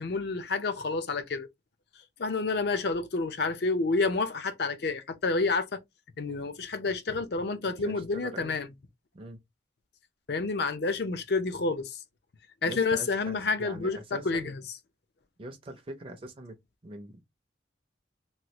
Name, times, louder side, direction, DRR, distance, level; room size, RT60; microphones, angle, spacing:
voice 1, 0.0-1.5 2.2-5.8 6.2-8.7 10.3-11.9 12.6-14.6, left 3 dB, 60° left, 0.5 m, -29 dB
voice 2, 7.8-8.6 9.1-9.4 12.6-14.5 15.4-16.6 16.8-17.2, right 1 dB, 30° right, 0.5 m, -43 dB
3.1 x 2.3 x 2.8 m
head